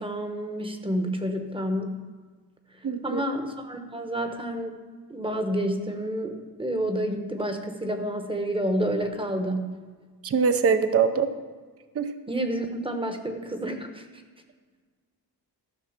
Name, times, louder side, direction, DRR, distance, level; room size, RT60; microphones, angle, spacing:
voice 1, 0.0-2.0 3.0-4.7 5.1-9.7 12.3-14.0, right 1 dB, 15° right, 6 dB, 1.0 m, -29 dB
voice 2, 2.8-3.2 10.2-11.3 11.9-12.1, right 6 dB, 35° right, 10 dB, 0.6 m, -23 dB
13.5 x 6.0 x 5.8 m, 1.5 s
cardioid pair, 140°, 40 cm